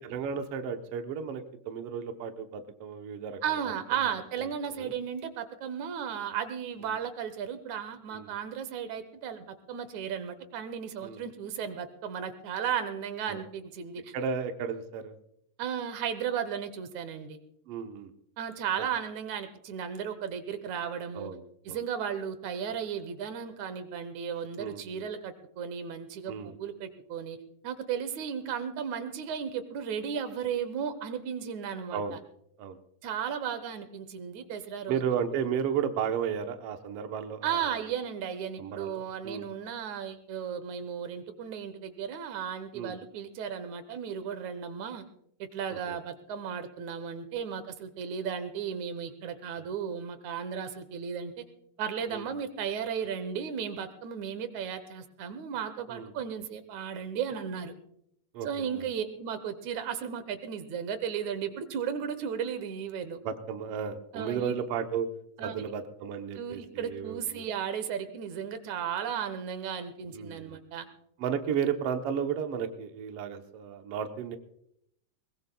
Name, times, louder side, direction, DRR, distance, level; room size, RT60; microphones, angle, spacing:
voice 1, 0.0-3.6 3.9-4.0 4.4-4.5 4.8-4.9 8.1-8.3 11.0-11.2 13.3-13.4 14.1-15.1 17.7-18.1 18.8-18.9 21.1-21.4 21.7-21.8 24.6-25.1 26.3-26.5 31.9-32.2 32.6-32.8 34.9-37.8 38.6-39.5 42.7-43.0 45.7-46.0 52.1-52.3 55.9-56.1 58.3-58.9 63.2-65.1 65.4-67.5 70.1-70.6 71.2-74.4, right 7 dB, 65° right, 6 dB, 1.8 m, -34 dB
voice 2, 3.4-14.1 15.6-17.4 18.4-21.3 21.7-27.4 27.6-32.2 33.0-35.0 37.4-45.0 45.4-51.4 51.8-57.7 58.4-63.2 64.1-64.5 65.4-65.7 66.4-70.9, right 7 dB, 80° right, 11 dB, 2.4 m, -35 dB
21.5 x 21.0 x 2.3 m, 0.74 s
omnidirectional pair, 3.3 m